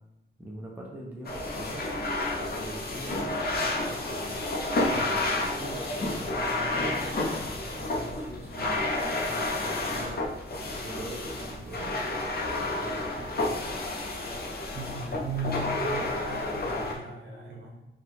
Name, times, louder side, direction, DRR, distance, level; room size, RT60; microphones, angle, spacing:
voice 1, 0.4-1.9 2.4-4.4 5.1-7.1 7.6-8.8 9.3-10.2 10.7-12.3 12.5-13.8 16.8-16.9, right 1 dB, 10° right, -3 dB, 0.6 m, -43 dB
sound 1, 1.3-17.0, left 2 dB, 50° left, 0.8 m, -30 dB
voice 2, 14.7-17.8, right 2 dB, 55° right, -3 dB, 1.4 m, -37 dB
4.3 x 2.4 x 3.3 m, 0.88 s
wide cardioid pair, 110°, 20 cm